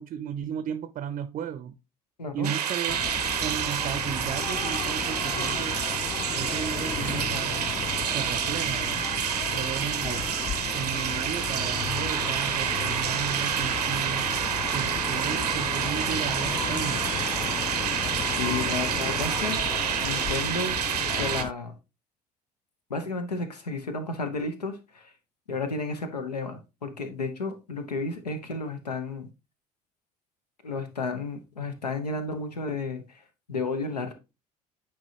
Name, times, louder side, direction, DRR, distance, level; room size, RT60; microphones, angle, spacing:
voice 1, 0.0-1.8 2.3-3.0 3.4-5.8 6.4-7.7 8.1-9.1 9.5-10.3 10.7-14.3 14.7-17.3, right 9 dB, 40° right, 0.5 m, -34 dB
voice 2, 2.2-2.5 10.0-10.2 18.4-19.6 20.0-20.8 21.1-21.7 22.9-25.1 25.5-29.3 30.6-33.2 33.5-34.1, left 3 dB, 85° left, 0.9 m, -32 dB
sound 1, 2.4-21.4, right 9 dB, 85° right, 0.6 m, -28 dB
sound 2, 2.9-21.5, left 8 dB, 25° left, 0.3 m, -35 dB
sound 3, 11.5-18.4, left 6 dB, 65° left, 1.9 m, -45 dB
8.9 x 4.5 x 2.7 m
figure-of-eight pair, 60°, 20 cm